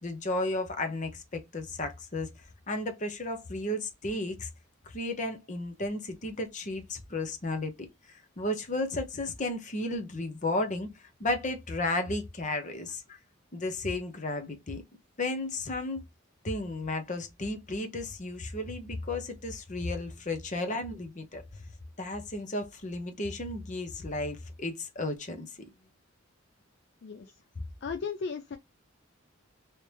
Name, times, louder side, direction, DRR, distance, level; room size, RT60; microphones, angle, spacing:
voice 1, 0.0-2.3 2.7-4.5 4.9-10.9 11.2-13.2 13.5-14.8 15.2-16.0 16.4-21.4 22.0-25.5, left 2 dB, 35° left, 0.9 m, -33 dB
voice 2, 27.0-27.4 27.8-28.6, left 5 dB, 55° left, 0.4 m, -36 dB
3.2 x 2.8 x 3.3 m
head